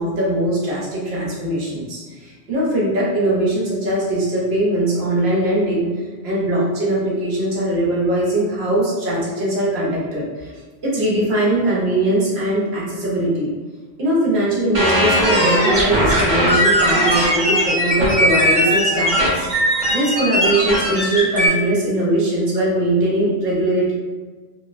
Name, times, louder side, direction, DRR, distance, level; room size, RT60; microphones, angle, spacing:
voice 1, 0.0-10.5 10.8-13.5 14.0-19.5 19.9-23.9, right 1 dB, 75° right, -5 dB, 1.0 m, -21 dB
sound 1, 14.7-21.5, equal, 50° right, 0.8 m, -18 dB
2.9 x 2.0 x 2.4 m, 1.4 s
omnidirectional pair, 1.1 m